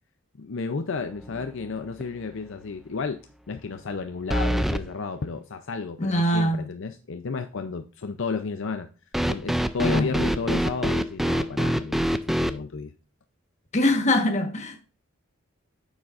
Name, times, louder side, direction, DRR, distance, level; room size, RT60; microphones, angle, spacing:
voice 1, 0.4-8.9 9.2-12.9, left 4 dB, 65° left, 0.6 m, -32 dB
sound 1, 1.2-1.7 2.0-2.1 4.3-4.8 9.1-12.6, equal, ahead, 0.3 m, -25 dB
voice 2, 6.0-6.7 9.8-10.2 13.7-14.8, left 1 dB, 35° left, 1.3 m, -23 dB
9.5 x 7.1 x 2.5 m
head